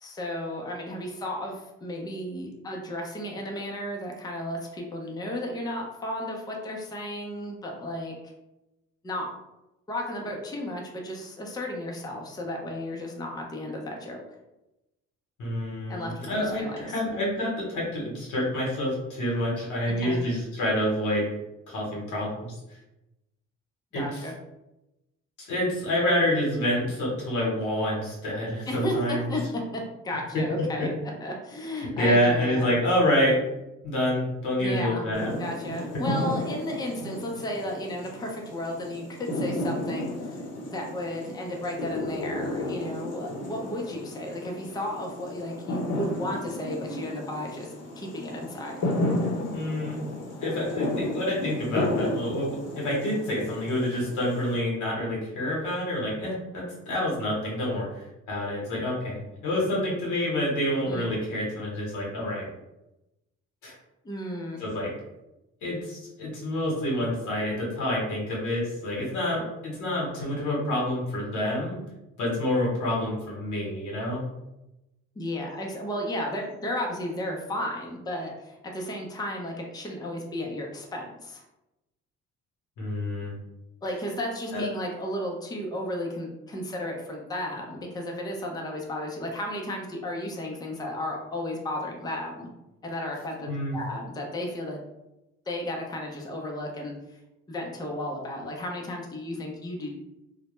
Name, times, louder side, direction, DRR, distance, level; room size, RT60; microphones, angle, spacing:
voice 1, 0.0-8.2 9.0-9.3 9.9-14.2 15.9-17.0 20.0-20.2 23.9-24.3 28.7-29.4 29.7-30.9 31.2-32.7 34.6-35.0 35.4-40.4 40.7-47.7 48.0-48.8 60.8-61.1 64.0-64.6 75.2-81.4 83.8-92.5 92.8-94.8 95.5-96.9 97.5-99.9, left 1 dB, 15° left, 0 dB, 0.5 m, -34 dB
voice 2, 15.4-21.4 21.7-22.5 23.9-24.2 25.4-29.3 30.3-30.9 32.0-33.4 33.8-35.3 35.9-36.0 49.5-50.0 50.4-62.5 63.6-63.7 64.6-65.0 65.6-71.8 72.2-74.2 82.8-83.3 84.5-84.7 93.5-93.8, left 1 dB, 85° left, -4 dB, 0.9 m, -27 dB
sound 1, 35.1-54.6, left 1 dB, 55° left, 0.8 m, -33 dB
2.1 x 2.1 x 2.9 m, 0.94 s
cardioid pair, 90°, 30 cm